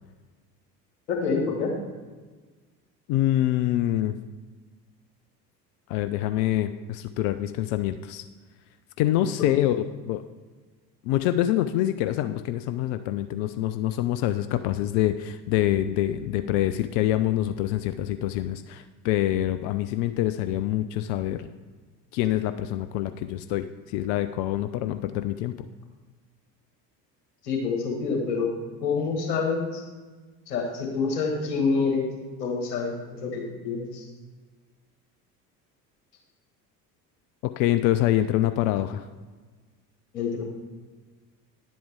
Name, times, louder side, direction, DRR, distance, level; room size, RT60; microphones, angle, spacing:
voice 1, 1.1-1.7 27.4-28.5 28.8-29.8 30.5-32.1 32.4-34.1 40.1-40.4, left 4 dB, 65° left, 1 dB, 1.9 m, -27 dB
voice 2, 3.1-4.1 5.9-8.2 9.0-9.8 10.1-10.2 11.1-21.5 22.1-23.7 23.9-25.5 37.4-39.0, left 13 dB, 40° left, 11 dB, 0.4 m, -25 dB
10.0 x 7.7 x 3.5 m, 1.4 s
figure-of-eight pair, 60°, 50 cm